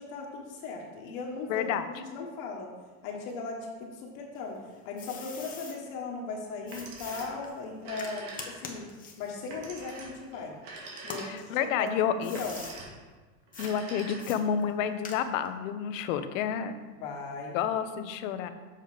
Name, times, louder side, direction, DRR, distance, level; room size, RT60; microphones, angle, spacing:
voice 1, 0.0-2.7 3.0-4.6 4.8-8.9 9.2-10.6 11.0-11.9 12.2-12.6 17.0-17.6, left 4 dB, 55° left, 0 dB, 1.4 m, -38 dB
voice 2, 1.5-1.9 11.2-12.4 13.6-16.8 17.5-18.5, left 8 dB, 70° left, 10 dB, 0.8 m, -30 dB
sound 1, 4.3-5.8 6.7-10.6 11.0-12.8 13.5-13.7 14.2-15.5, left 5 dB, 20° left, 1.0 m, -45 dB
Telephone, 6.6-7.4 7.7-8.8 9.5-11.6 12.2-13.0 13.5-14.5, right 3 dB, 65° right, 2.3 m, -44 dB
7.5 x 5.4 x 5.0 m, 1.4 s
supercardioid pair, 140°, 40 cm